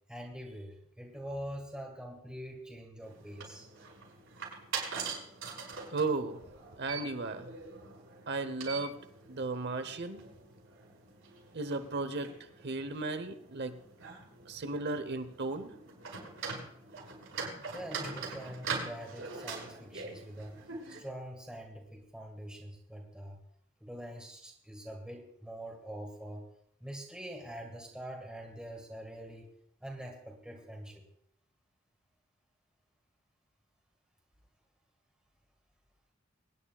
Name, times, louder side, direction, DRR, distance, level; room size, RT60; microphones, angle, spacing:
voice 1, 0.1-3.7 17.7-20.5 20.9-23.4 23.8-26.4 26.8-29.5 29.8-31.0, equal, 5° right, -1 dB, 1.7 m, -44 dB
sound 1, 3.0-21.0, right 5 dB, 75° right, 5.7 m, -43 dB
voice 2, 5.9-6.4 6.8-7.5 8.3-8.9 9.3-10.2 11.5-12.3 12.6-13.7 14.5-15.7, right 3 dB, 55° right, 9 dB, 0.9 m, -35 dB
24.0 x 10.0 x 2.3 m, 0.71 s
head